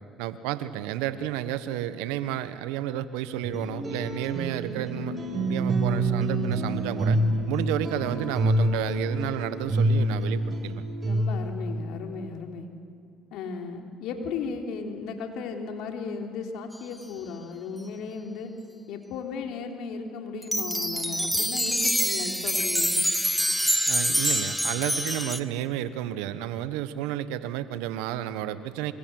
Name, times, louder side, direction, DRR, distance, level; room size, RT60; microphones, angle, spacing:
voice 1, 0.2-5.2 5.5-7.2 7.5-10.8 23.9-28.9, right 12 dB, 85° right, 12 dB, 1.3 m, -31 dB
sound 1, 3.4-11.7, right 1 dB, 30° right, 6.8 m, -27 dB
voice 2, 11.1-12.7 13.3-18.5 18.9-22.9, left 5 dB, 75° left, 3 dB, 3.5 m, -35 dB
sound 2, 20.4-25.4, equal, ahead, 1.8 m, -26 dB
25.5 x 25.0 x 7.9 m, 2.4 s
supercardioid pair, 70°, 0 cm